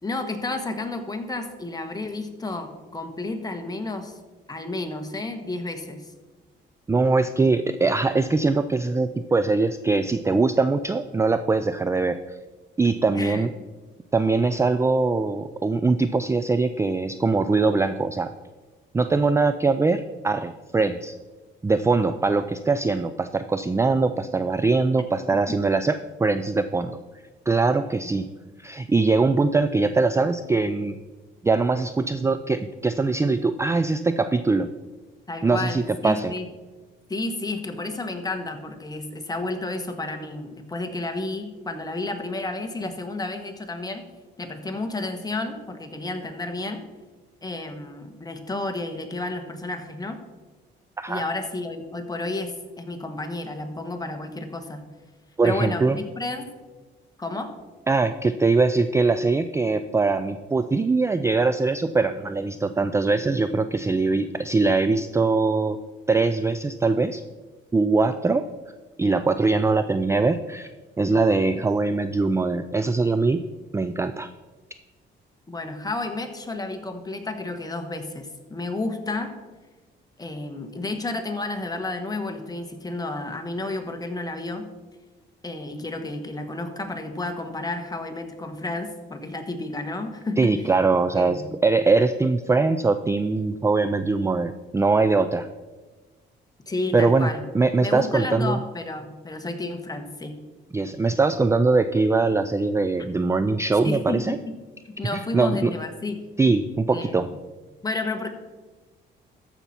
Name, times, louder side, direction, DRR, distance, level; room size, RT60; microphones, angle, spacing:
voice 1, 0.0-4.2 4.5-6.1 13.1-13.4 35.3-36.5 37.1-44.0 44.4-46.8 47.4-50.2 51.1-54.8 55.4-56.5 57.2-57.5 71.1-71.2 75.5-79.3 80.2-84.7 85.4-90.5 91.1-91.4 96.7-97.4 97.8-100.4 103.8-104.4 104.8-106.2 106.9-107.3 107.8-108.3, left 2 dB, 20° left, 5 dB, 1.3 m, -31 dB
voice 2, 6.9-12.4 12.8-13.5 14.1-18.3 18.9-21.2 21.6-27.0 27.5-28.3 28.6-31.0 31.4-34.7 35.4-36.3 51.0-51.2 55.4-56.0 57.9-65.8 66.1-67.2 67.7-68.5 69.0-70.7 71.0-73.5 73.7-74.3 90.4-95.5 96.9-98.6 100.7-104.4 105.1-105.7 106.4-107.3, right 3 dB, 15° right, 11 dB, 0.3 m, -22 dB
14.0 x 5.8 x 4.3 m, 1.3 s
cardioid pair, 90°, 20 cm